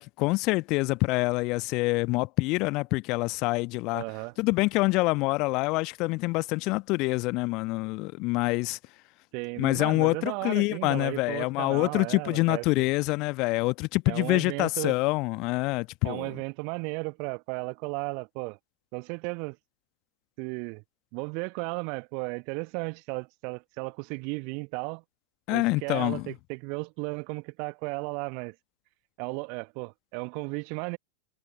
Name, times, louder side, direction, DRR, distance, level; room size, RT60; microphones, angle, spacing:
voice 1, 0.0-4.0 4.4-8.8 9.6-16.3 25.5-26.2, left 24 dB, 40° left, 1.2 m, -26 dB
voice 2, 3.9-4.4 9.3-12.9 14.1-15.0 16.0-18.6 18.9-19.6 20.4-20.8 21.1-25.0 25.5-28.5 29.2-31.0, right 36 dB, 45° right, 1.3 m, -35 dB
figure-of-eight pair, 90°, 0 cm